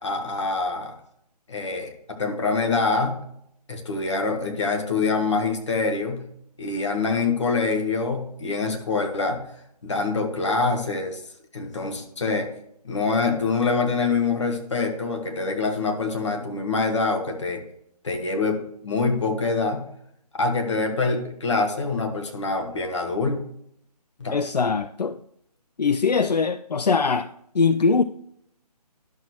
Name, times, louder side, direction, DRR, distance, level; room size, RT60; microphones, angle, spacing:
voice 1, 0.0-0.9 1.5-3.2 3.7-6.3 6.6-9.4 9.8-11.2 11.5-12.5 12.8-17.6 18.0-19.9 20.3-23.4 24.2-24.4, left 4 dB, 45° left, 1.3 m, -25 dB
voice 2, 24.3-25.2 25.8-28.0, left 5 dB, 75° left, 0.4 m, -22 dB
11.5 x 6.4 x 2.9 m
figure-of-eight pair, 145°, 21 cm